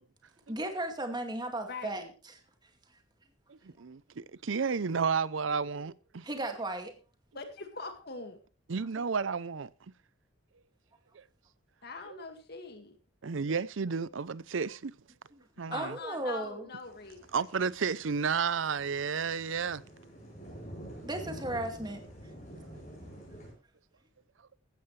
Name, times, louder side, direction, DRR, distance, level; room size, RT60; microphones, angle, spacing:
voice 1, 0.5-2.3 6.2-6.9 15.7-16.7 21.0-22.0, right 1 dB, 20° right, 2.2 m, -35 dB
voice 2, 1.7-2.1 7.3-8.4 11.8-13.0 15.7-17.2, left 4 dB, 55° left, 2.0 m, -42 dB
voice 3, 3.5-6.3 8.7-9.7 11.1-11.2 12.1-12.2 13.2-14.9 15.6-16.0 17.3-19.8, right 5 dB, 90° right, 0.6 m, -32 dB
sound 1, 16.8-23.5, equal, 40° left, 7.7 m, -48 dB
15.5 x 12.5 x 3.3 m
head